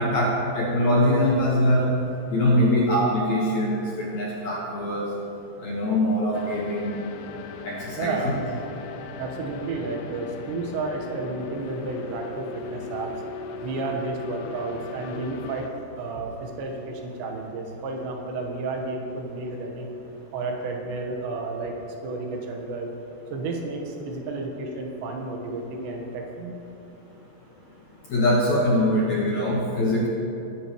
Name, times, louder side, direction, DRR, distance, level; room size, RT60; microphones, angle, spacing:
voice 1, 0.0-1.9 2.3-5.1 5.6-7.0 7.6-8.3 28.1-30.1, left 1 dB, 60° left, -5 dB, 2.0 m, -23 dB
sound 1, 6.3-15.7, left 4 dB, 80° left, 2.2 m, -38 dB
voice 2, 8.0-8.4 9.2-13.1 13.6-15.7 16.0-19.9 20.3-22.9 23.3-26.6, right 3 dB, 80° right, 1 dB, 3.5 m, -32 dB
21.5 x 10.5 x 3.1 m, 2.9 s
omnidirectional pair, 5.0 m